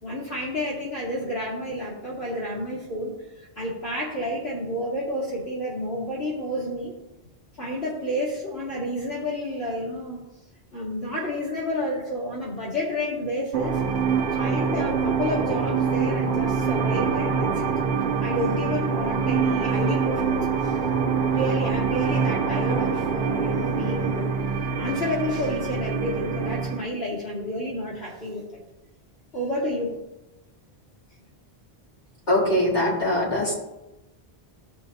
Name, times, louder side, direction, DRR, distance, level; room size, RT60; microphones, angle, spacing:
voice 1, 0.0-3.1 3.6-6.9 7.6-10.2 10.7-13.8 14.3-17.7 18.2-20.8 21.3-24.4 24.6-28.6 29.3-30.0, left 1 dB, 85° left, -6 dB, 2.5 m, -30 dB
sound 1, 13.5-26.9, right 6 dB, 55° right, 0.9 m, -25 dB
voice 2, 32.3-33.5, left 1 dB, 45° left, -7 dB, 3.6 m, -22 dB
16.0 x 5.6 x 2.7 m, 0.98 s
omnidirectional pair, 1.0 m